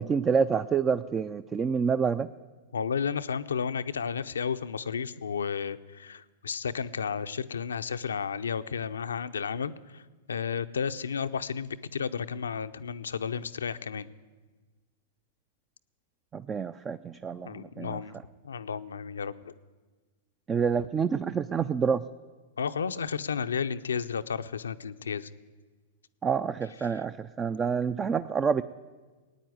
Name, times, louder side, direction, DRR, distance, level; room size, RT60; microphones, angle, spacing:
voice 1, 0.0-2.3 16.3-18.0 20.5-22.0 26.2-28.6, right 6 dB, 20° right, 13 dB, 0.4 m, -28 dB
voice 2, 2.7-10.0 10.3-14.1 17.4-18.1 18.4-19.5 22.6-25.3, left 6 dB, 85° left, 11 dB, 0.6 m, -32 dB
16.5 x 9.3 x 9.3 m, 1.4 s
hypercardioid pair, 110°, 0 cm